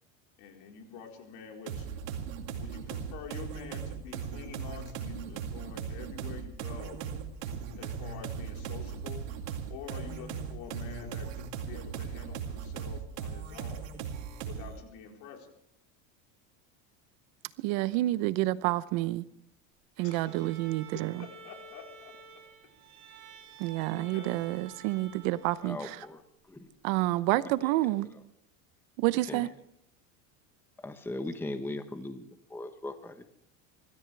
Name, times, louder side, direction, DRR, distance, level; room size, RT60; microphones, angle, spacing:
voice 1, 0.4-2.0 2.5-7.1 7.8-9.3 9.7-13.9 14.4-15.5 20.0-20.5 21.2-22.2 23.9-24.4, left 7 dB, 65° left, 4.4 m, -47 dB
sound 1, 1.7-14.8, right 7 dB, 85° right, 2.5 m, -38 dB
voice 2, 17.6-19.2 20.0-21.3 23.6-26.0 26.8-28.1 29.0-29.5, right 17 dB, 70° right, 0.9 m, -29 dB
Bowed string instrument, 20.0-26.3, right 5 dB, 50° right, 6.7 m, -51 dB
voice 3, 25.6-26.2 26.5-26.7 27.6-27.7 29.3-29.5 30.8-33.2, left 2 dB, 5° left, 1.1 m, -39 dB
25.0 x 14.0 x 3.4 m
supercardioid pair, 115°, 39 cm